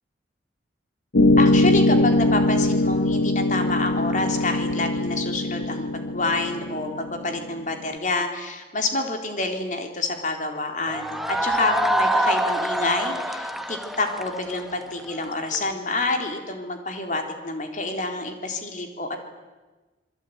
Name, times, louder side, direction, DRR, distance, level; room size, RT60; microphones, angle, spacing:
sound 1, 1.1-7.7, left 2 dB, 80° left, 1.7 m, -21 dB
voice 1, 1.4-19.2, left 2 dB, 40° left, 4 dB, 3.9 m, -28 dB
sound 2, 10.9-15.6, right 1 dB, ahead, 1.3 m, -25 dB
27.5 x 22.0 x 9.5 m, 1.2 s
head